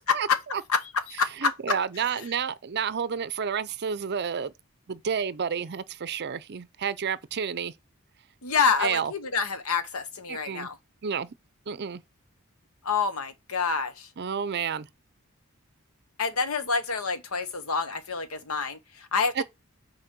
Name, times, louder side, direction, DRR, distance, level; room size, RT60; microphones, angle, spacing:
voice 1, 0.7-1.7 8.4-10.8 12.8-14.1 16.2-19.4, left 5 dB, 85° left, 1.1 m, -27 dB
voice 2, 1.4-4.5 4.9-7.7 8.8-9.1 10.3-10.7 11.0-11.3 11.7-12.0 14.2-14.9 19.4-19.5, right 7 dB, 50° right, 0.5 m, -30 dB
6.5 x 4.3 x 6.0 m
head